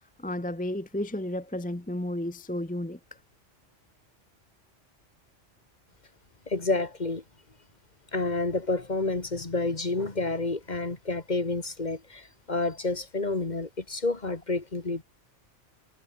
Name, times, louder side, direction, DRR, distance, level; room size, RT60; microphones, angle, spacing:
voice 1, 0.2-3.0, left 1 dB, 10° left, 0.9 m, -32 dB
voice 2, 6.5-7.2 8.1-15.0, left 3 dB, 35° left, 2.0 m, -29 dB
omnidirectional pair, 1.2 m